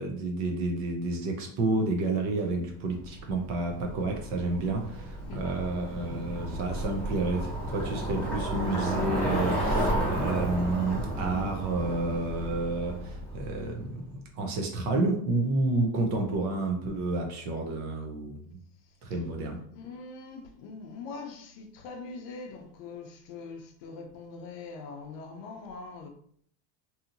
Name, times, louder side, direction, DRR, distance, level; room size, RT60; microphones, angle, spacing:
voice 1, 0.0-14.0 14.4-18.4 19.0-19.6, right 2 dB, 40° right, 0.5 m, -30 dB
Bicycle, 3.0-13.9, right 1 dB, ahead, 0.7 m, -32 dB
voice 2, 19.4-26.1, left 4 dB, 50° left, 0.6 m, -42 dB
2.8 x 2.7 x 2.5 m
supercardioid pair, 145°, 48 cm